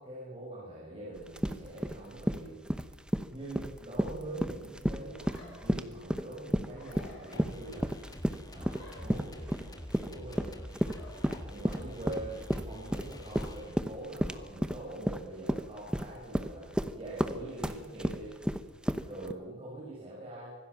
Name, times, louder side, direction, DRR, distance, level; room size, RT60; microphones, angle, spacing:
voice 1, 0.0-2.6 3.3-7.9 8.5-10.9 11.4-18.3 19.0-20.6, right 1 dB, 25° right, -6 dB, 6.7 m, -44 dB
sound 1, 1.2-19.3, equal, 5° right, 0.9 m, -32 dB
sound 2, 5.1-5.7 6.7-7.4 8.6-9.6 10.8-11.4, left 2 dB, 80° left, 6.5 m, -51 dB
sound 3, 7.3-14.1, left 1 dB, 20° left, 1.7 m, -46 dB
25.5 x 18.5 x 7.1 m, 1.2 s
head